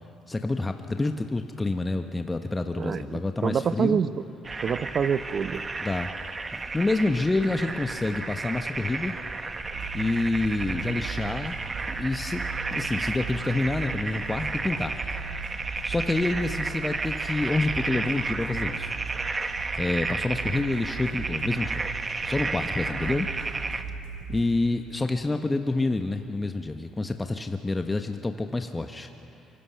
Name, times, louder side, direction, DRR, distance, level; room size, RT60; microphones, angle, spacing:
voice 1, 0.3-4.0 5.8-6.1 6.7-9.2 9.9-11.6 11.9-12.4 12.7-15.0 15.8-19.0 19.8-21.9 22.2-23.3 24.3-29.1, left 2 dB, 20° left, 6 dB, 1.1 m, -28 dB
voice 2, 2.8-4.1 4.6-5.6, right 7 dB, 50° right, 13 dB, 0.8 m, -26 dB
sound 1, 4.4-23.8, right 3 dB, 30° right, 1.2 m, -32 dB
Walk footsteps, 5.5-5.8 6.5-6.7 7.6-7.9 8.5-8.9 9.7-10.1 11.0-11.5 11.9-12.2 12.7-13.2 14.2-14.6, equal, 15° right, 7.3 m, -48 dB
sound 2, 9.6-24.4, right 5 dB, 85° right, 4.2 m, -39 dB
24.0 x 23.0 x 5.8 m, 2.9 s
hypercardioid pair, 60°, 0 cm